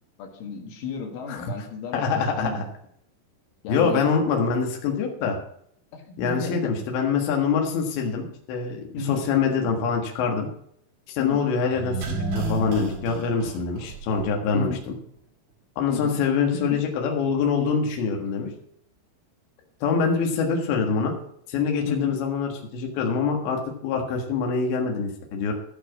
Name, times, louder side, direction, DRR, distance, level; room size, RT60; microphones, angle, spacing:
voice 1, 0.2-2.6 3.6-4.1 5.9-6.7 8.9-9.2 11.2-11.5 14.5-14.8 15.9-16.2 16.5-16.8 21.9-22.1, left 5 dB, 90° left, 2 dB, 4.2 m, -33 dB
voice 2, 1.9-2.6 3.7-5.4 6.2-10.5 11.1-14.7 15.8-18.5 19.8-21.1 21.5-25.5, left 5 dB, 70° left, 1 dB, 3.8 m, -25 dB
sound 1, 11.7-14.6 14.8-14.9, right 3 dB, 45° right, 2.7 m, -31 dB
14.0 x 6.1 x 6.1 m, 0.69 s
omnidirectional pair, 5.4 m